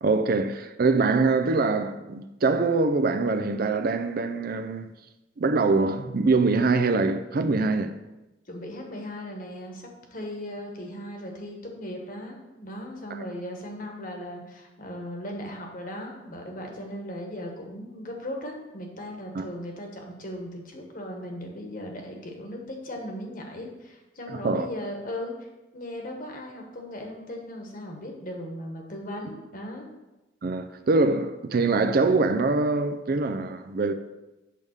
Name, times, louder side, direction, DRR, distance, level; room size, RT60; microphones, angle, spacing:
voice 1, 0.0-4.9 5.4-8.0 13.1-13.3 19.3-19.4 24.3-24.7 30.4-33.9, right 3 dB, 50° right, 0.4 m, -24 dB
voice 2, 8.5-25.3 25.7-29.9, left 1 dB, 45° left, 1.4 m, -37 dB
8.4 x 3.5 x 6.6 m
head